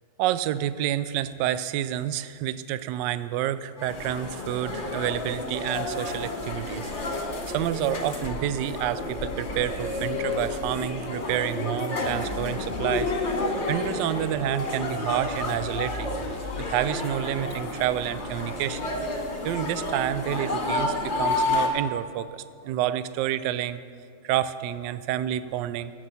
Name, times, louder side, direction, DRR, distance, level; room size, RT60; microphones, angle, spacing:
voice 1, 0.2-13.1 13.7-16.1 16.7-18.9 19.4-23.8 24.2-25.9, right 12 dB, 75° right, 14 dB, 1.0 m, -29 dB
sound 1, 3.8-21.7, left 2 dB, 35° left, 1.5 m, -30 dB
sound 2, 12.0-19.0, left 3 dB, 65° left, 0.5 m, -42 dB
12.0 x 8.7 x 6.9 m, 2.2 s
omnidirectional pair, 2.3 m